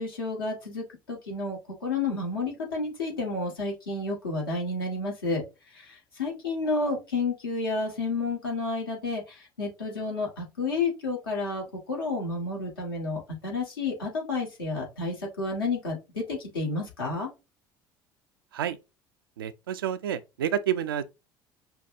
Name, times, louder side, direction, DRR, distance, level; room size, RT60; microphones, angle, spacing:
voice 1, 0.0-5.4 5.7-17.3, left 3 dB, 85° left, 1.5 m, -31 dB
voice 2, 19.4-21.0, right 9 dB, 85° right, 0.4 m, -29 dB
5.5 x 2.2 x 2.5 m
hypercardioid pair, 65°, 12 cm